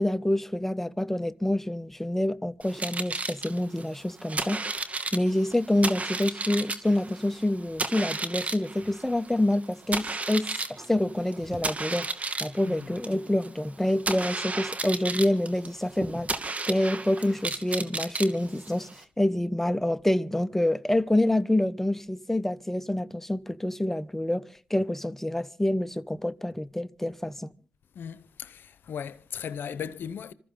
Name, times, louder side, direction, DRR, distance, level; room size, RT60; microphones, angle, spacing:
voice 1, 0.0-4.6 5.1-12.1 12.4-16.3 16.7-18.9 19.2-27.5, left 1 dB, 10° left, 1.0 m, -27 dB
sound 1, 2.6-19.0, right 3 dB, 40° right, 2.3 m, -34 dB
voice 2, 12.6-12.9 27.9-30.3, left 8 dB, 80° left, 0.8 m, -37 dB
26.5 x 14.5 x 3.8 m
cardioid pair, 50°, 3 cm